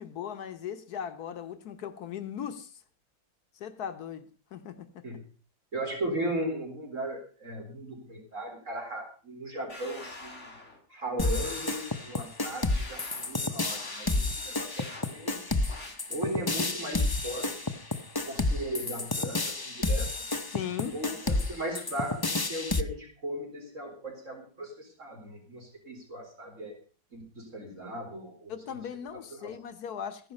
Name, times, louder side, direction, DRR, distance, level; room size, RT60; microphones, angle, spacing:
voice 1, 0.0-2.8 3.6-5.0 20.5-21.0 28.5-30.3, left 8 dB, 80° left, 1.5 m, -38 dB
voice 2, 5.7-10.5 10.9-15.4 16.1-17.7 18.3-20.1 20.9-26.7 27.1-28.5 29.3-29.5, right 1 dB, 55° right, 4.2 m, -37 dB
sound 1, 9.7-10.8 11.2-12.2 12.7-13.3 13.7-14.2 14.7-15.1 15.7-15.9, left 2 dB, 50° left, 3.7 m, -45 dB
sound 2, 11.2-22.8, left 2 dB, 20° left, 0.6 m, -30 dB
15.0 x 11.0 x 5.3 m
omnidirectional pair, 1.6 m